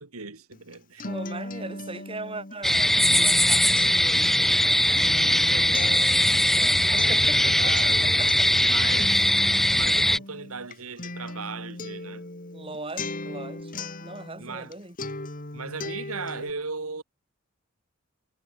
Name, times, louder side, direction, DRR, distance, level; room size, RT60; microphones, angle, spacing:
voice 1, 0.0-1.1 5.5-6.1 6.8-9.3 9.7-12.2 14.4-14.7 15.5-17.0, right 4 dB, 85° right, 2.6 m, -37 dB
Acoustic guitar, 0.5-14.7 15.0-16.5, left 2 dB, 40° left, 2.7 m, -38 dB
voice 2, 1.0-8.6 12.5-15.0, right 2 dB, 25° right, 4.9 m, -40 dB
sound 1, 2.6-10.2, left 1 dB, ahead, 0.3 m, -21 dB
head